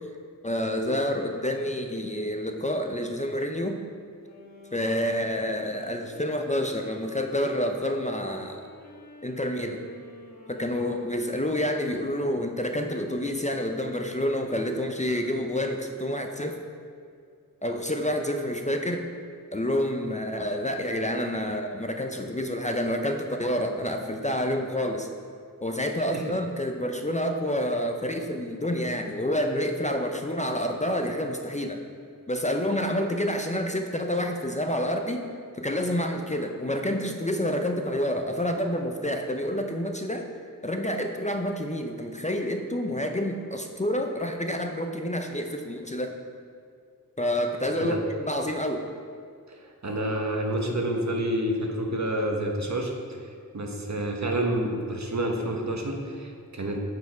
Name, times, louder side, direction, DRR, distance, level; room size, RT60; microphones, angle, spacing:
voice 1, 0.4-3.8 4.7-8.6 9.2-9.8 10.5-16.6 17.6-19.1 19.5-25.1 25.6-31.8 32.3-35.3 35.5-40.3 40.6-46.2 47.2-48.9, equal, 20° left, 4 dB, 0.5 m, -28 dB
Wind instrument woodwind instrument, 4.1-11.8, left 2 dB, 50° left, 1.4 m, -48 dB
voice 2, 49.5-52.9 53.5-56.8, right 1 dB, 55° right, 2 dB, 1.0 m, -29 dB
8.0 x 4.7 x 4.8 m, 2.3 s
wide cardioid pair, 65°, 34 cm